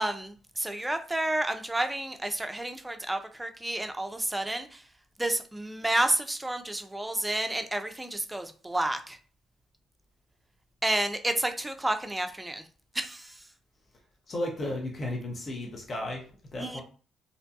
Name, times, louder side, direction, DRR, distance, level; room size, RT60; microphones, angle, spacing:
voice 1, 0.0-4.8 5.2-9.2 10.8-12.7 12.9-13.4 16.6-16.8, right 1 dB, 15° right, 0.5 m, -30 dB
voice 2, 14.3-16.2 16.5-16.8, left 1 dB, 45° left, 0.7 m, -34 dB
2.6 x 2.2 x 2.6 m
hypercardioid pair, 45°, 0 cm